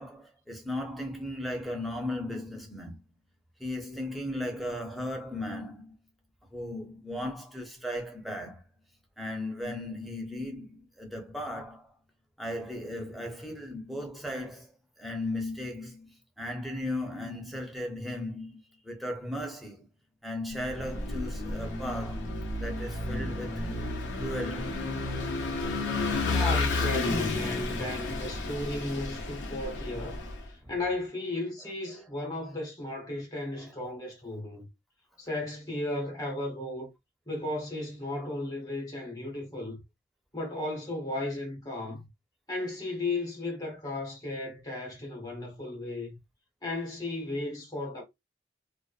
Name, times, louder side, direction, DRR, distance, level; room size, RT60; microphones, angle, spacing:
voice 1, 0.0-3.0 3.6-6.0 6.5-8.6 9.2-11.9 12.4-14.7 15.0-19.9 20.2-23.7 24.1-24.9 30.6-30.7 33.5-33.8, left 1 dB, ahead, 0.6 m, -36 dB
Vehicle / Engine, 20.7-30.4, left 2 dB, 85° left, 0.8 m, -31 dB
voice 2, 26.2-30.2 30.5-34.7 35.2-36.9 37.3-39.8 40.3-42.1 42.5-46.2 46.6-48.0, left 2 dB, 20° left, 1.0 m, -35 dB
2.5 x 2.1 x 2.4 m
head